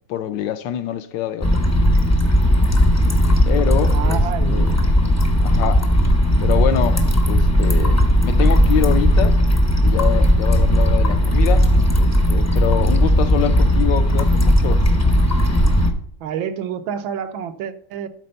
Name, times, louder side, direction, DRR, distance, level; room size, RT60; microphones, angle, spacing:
voice 1, 0.1-1.6 3.5-4.7 5.4-5.8 6.4-9.4 9.7-11.7 12.0-14.8, left 10 dB, 75° left, 1.3 m, -25 dB
sound 1, 1.4-15.9, equal, 20° left, 0.5 m, -16 dB
voice 2, 3.8-4.9 16.2-18.1, right 8 dB, 85° right, 1.6 m, -28 dB
12.0 x 4.3 x 5.4 m
omnidirectional pair, 2.1 m